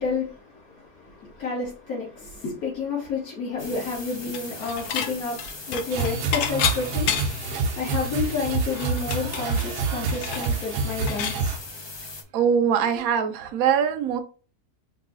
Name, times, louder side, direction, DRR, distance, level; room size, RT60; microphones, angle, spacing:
voice 1, 0.0-11.6, left 4 dB, 65° left, 2.6 m, -30 dB
sound 1, 3.6-12.2, left 3 dB, 40° left, 0.3 m, -40 dB
Dishes pots and pans / Chink clink, 4.3-5.1 5.4-7.5 7.9-8.0 8.3-11.4, left 8 dB, 80° left, 1.2 m, -30 dB
sound 2, 5.9-11.6, right 4 dB, 90° right, 1.2 m, -28 dB
voice 2, 12.3-14.2, right 7 dB, 70° right, 1.1 m, -22 dB
4.8 x 3.0 x 3.7 m
omnidirectional pair, 1.7 m